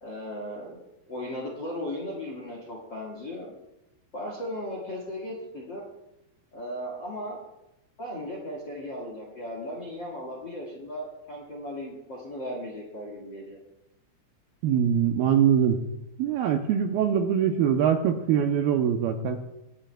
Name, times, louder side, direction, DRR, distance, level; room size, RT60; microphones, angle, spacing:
voice 1, 0.0-0.8 1.1-3.5 4.1-5.8 6.5-7.4 8.0-13.6, left 1 dB, 60° left, -3 dB, 1.2 m, -36 dB
voice 2, 14.6-15.8 16.2-19.4, right 8 dB, 80° right, 4 dB, 2.2 m, -23 dB
23.5 x 8.9 x 2.2 m, 0.91 s
omnidirectional pair, 4.9 m